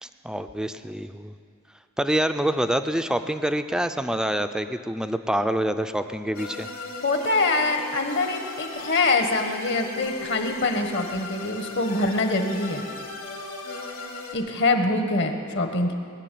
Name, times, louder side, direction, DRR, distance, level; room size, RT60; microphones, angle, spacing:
voice 1, 0.0-1.3 2.0-6.7, right 1 dB, 5° right, 9 dB, 0.4 m, -26 dB
sound 1, 6.3-14.4, left 2 dB, 70° left, 3.0 m, -37 dB
voice 2, 7.0-12.8 14.3-15.9, left 2 dB, 55° left, 6 dB, 1.4 m, -24 dB
20.0 x 7.5 x 9.2 m, 2.2 s
head